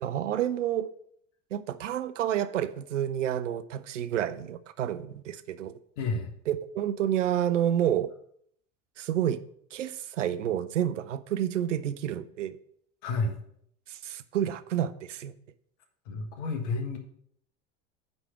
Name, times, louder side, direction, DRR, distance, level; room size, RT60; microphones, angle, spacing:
voice 1, 0.0-0.9 1.5-5.8 6.5-8.1 9.0-9.4 9.7-12.6 13.9-15.3, right 10 dB, 90° right, 14 dB, 0.6 m, -29 dB
voice 2, 6.0-6.3 13.0-13.3 16.0-17.0, left 3 dB, 75° left, 4 dB, 1.6 m, -30 dB
9.4 x 3.4 x 5.9 m, 0.69 s
hypercardioid pair, 85°, 36 cm